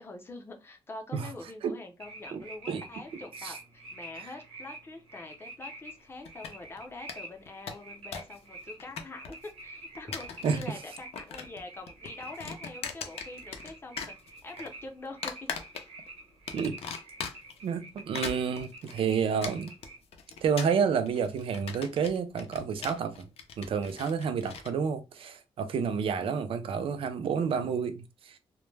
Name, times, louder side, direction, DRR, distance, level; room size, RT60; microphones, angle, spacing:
voice 1, 0.0-15.3 26.2-26.5, left 2 dB, 25° left, 0.5 m, -45 dB
sound 1, 2.0-20.0, right 2 dB, 90° right, 0.9 m, -48 dB
voice 2, 2.3-2.8 3.4-3.5 4.2-4.3 10.4-10.6 16.5-16.8 17.6-19.7 20.4-23.3 23.6-28.4, right 6 dB, 65° right, 0.4 m, -30 dB
sound 2, 6.2-6.8 7.1-7.2 7.5-8.4 8.6-9.5 9.9-10.7 11.0-11.6 11.9-13.7 14.0-14.7 15.2-16.1 16.5-17.6 18.0-24.7, left 6 dB, 80° left, 0.4 m, -39 dB
2.1 x 2.0 x 3.2 m
wide cardioid pair, 150°, 10 cm